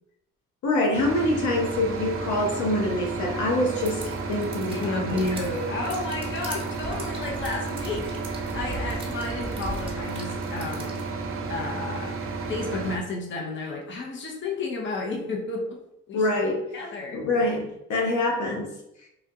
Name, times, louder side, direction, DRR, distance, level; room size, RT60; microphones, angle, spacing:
voice 1, 0.6-5.2 16.1-16.6 17.1-18.7, left 1 dB, 70° left, 0 dB, 0.9 m, -25 dB
sound 1, 0.9-13.0, right 4 dB, 45° right, 0.6 m, -32 dB
sound 2, 3.7-11.1, right 2 dB, 20° right, 0.8 m, -40 dB
voice 2, 4.7-11.0 11.5-12.2 12.5-15.8 16.1-16.2 16.7-17.2, left 3 dB, 40° left, -1 dB, 0.7 m, -32 dB
3.5 x 2.3 x 2.7 m, 0.82 s
cardioid pair, 90°, 30 cm